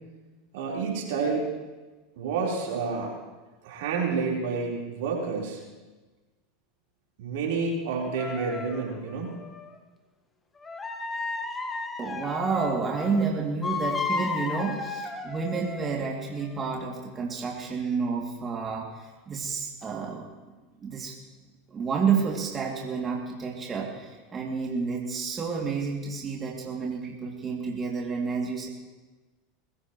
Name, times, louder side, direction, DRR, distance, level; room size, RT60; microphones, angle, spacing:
voice 1, 0.5-1.5 2.2-3.1 3.6-5.6 7.2-9.4, right 4 dB, 70° right, -2 dB, 4.2 m, -29 dB
sound 1, 8.2-9.7 10.6-13.2 13.6-16.0 16.4-16.7, left 4 dB, 20° left, 1.5 m, -34 dB
voice 2, 12.0-20.3 20.8-21.1 21.7-28.7, right 5 dB, 30° right, -2 dB, 2.6 m, -30 dB
22.0 x 16.0 x 3.1 m, 1.2 s
hypercardioid pair, 90°, 0 cm